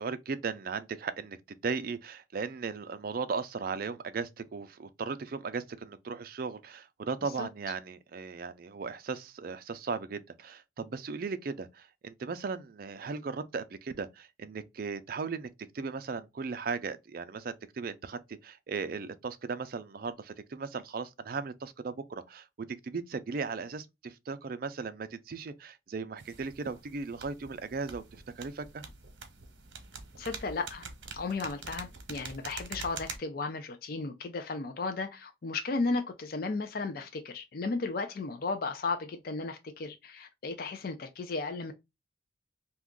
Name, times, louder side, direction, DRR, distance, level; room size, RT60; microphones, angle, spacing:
voice 1, 0.0-1.4 1.6-15.5 15.7-22.5 22.8-28.0 28.4-28.8, right 4 dB, 50° right, 0.4 m, -37 dB
sound 1, 26.2-33.2, right 4 dB, 75° right, 0.8 m, -45 dB
voice 2, 30.2-30.9 31.1-41.7, left 3 dB, 50° left, 0.4 m, -34 dB
2.8 x 2.4 x 3.6 m
head